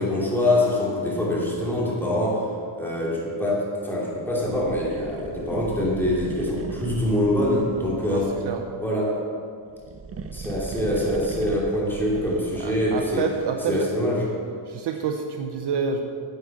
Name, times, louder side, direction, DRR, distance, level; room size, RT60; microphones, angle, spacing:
voice 1, 0.0-2.5 2.8-8.3 8.8-9.3 10.3-13.3 13.7-14.2, left 1 dB, 5° left, -5 dB, 2.9 m, -24 dB
sound 1, 4.3-8.8 9.7-13.3, right 4 dB, 30° right, 0.5 m, -38 dB
voice 2, 8.1-8.6 12.6-13.9 14.7-16.0, right 6 dB, 55° right, 4 dB, 0.9 m, -28 dB
9.7 x 8.0 x 7.2 m, 2.2 s
cardioid pair, 145°, 49 cm